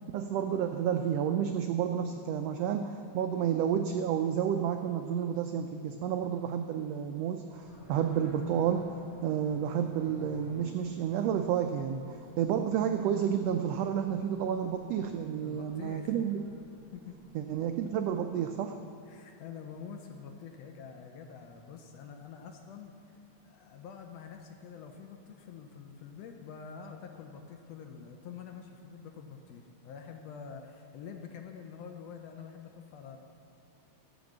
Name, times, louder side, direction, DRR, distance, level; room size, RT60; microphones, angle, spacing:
voice 1, 0.1-16.4 17.3-18.8, right 8 dB, 85° right, 6 dB, 1.4 m, -30 dB
sound 1, 7.5-17.9, equal, 20° left, 2.7 m, -57 dB
voice 2, 15.4-16.1 16.9-17.2 19.1-23.2 23.4-33.2, left 6 dB, 75° left, 4 dB, 1.6 m, -46 dB
15.0 x 5.2 x 7.2 m, 2.8 s
omnidirectional pair, 3.4 m